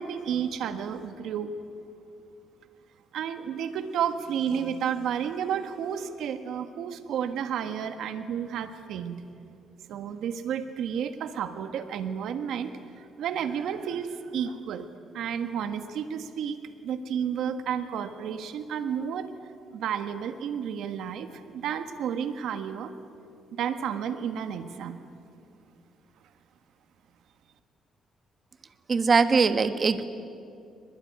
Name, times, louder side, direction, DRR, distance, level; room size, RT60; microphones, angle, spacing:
voice 1, 0.0-1.6 3.1-9.2 9.9-14.9 15.1-19.3 19.7-22.9 23.5-24.9, right 8 dB, 75° right, 9 dB, 1.5 m, -31 dB
voice 2, 28.9-30.0, right 4 dB, 35° right, 10 dB, 1.3 m, -21 dB
22.5 x 21.0 x 9.5 m, 2.5 s
cardioid pair, 110°, 0 cm